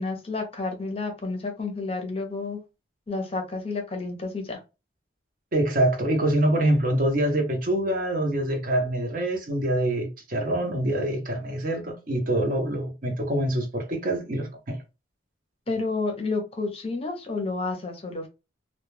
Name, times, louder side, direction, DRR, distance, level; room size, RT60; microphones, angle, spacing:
voice 1, 0.0-2.6 3.1-4.6 15.7-18.3, left 3 dB, 30° left, 0.6 m, -30 dB
voice 2, 5.5-14.8, right 1 dB, 45° right, 0.7 m, -25 dB
2.2 x 2.1 x 3.1 m
head